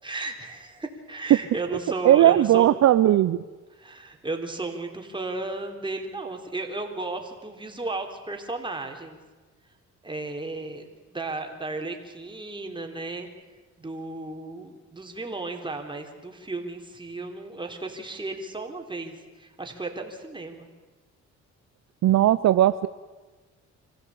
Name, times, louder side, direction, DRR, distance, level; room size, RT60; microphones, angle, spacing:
voice 1, 0.0-2.7 3.7-9.2 10.0-13.3 13.8-20.7, right 3 dB, 15° right, 3 dB, 3.7 m, -34 dB
voice 2, 2.0-3.4 22.0-22.9, right 12 dB, 65° right, 13 dB, 0.7 m, -18 dB
25.5 x 15.5 x 8.6 m, 1.3 s
cardioid pair, 90°, 30 cm